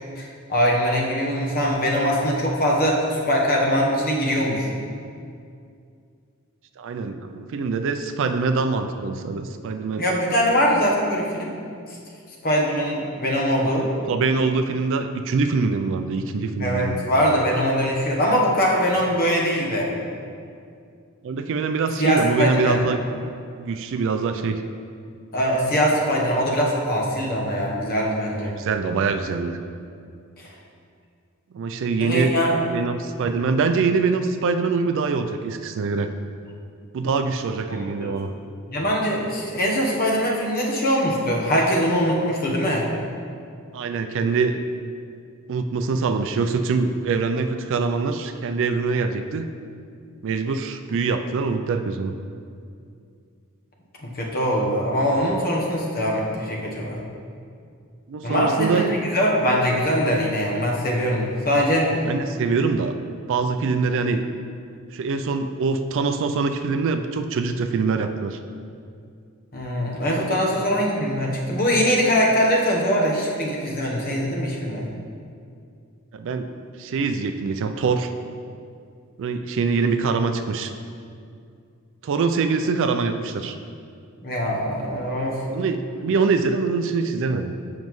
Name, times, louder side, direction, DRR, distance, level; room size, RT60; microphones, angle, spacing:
voice 1, 0.1-4.7 10.0-11.5 11.9-12.0 12.4-13.9 16.6-19.9 22.0-22.8 25.3-28.5 30.4-30.5 32.0-32.6 38.0-38.1 38.7-42.9 54.0-57.0 58.2-62.0 69.5-74.8 84.2-85.4, equal, 45° left, -2 dB, 1.0 m, -22 dB
voice 2, 6.8-10.1 13.8-17.0 21.2-23.0 23.6-24.6 28.3-29.6 31.5-32.3 32.7-36.1 36.9-38.3 43.7-44.6 45.5-49.5 50.2-52.1 58.1-58.8 62.0-62.9 63.3-64.2 64.9-68.4 70.1-70.4 76.1-76.5 76.8-78.1 79.2-80.7 82.0-83.6 85.5-87.5, right 4 dB, 60° right, 8 dB, 0.4 m, -24 dB
7.3 x 5.3 x 3.1 m, 2.4 s
head